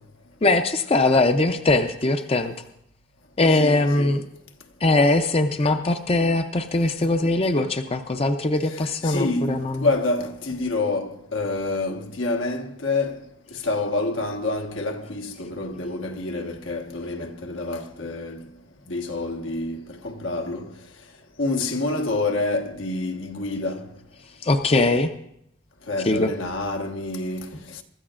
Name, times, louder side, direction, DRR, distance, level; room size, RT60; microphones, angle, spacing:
voice 1, 0.4-2.5 3.4-4.2 4.8-9.9 24.4-25.1 26.0-26.3, left 2 dB, 30° left, 0.5 m, -21 dB
voice 2, 3.6-4.2 8.7-13.2 13.6-18.4 18.9-20.7 21.4-23.9 25.9-27.8, left 2 dB, 85° left, 1.3 m, -27 dB
24.5 x 13.5 x 2.5 m
head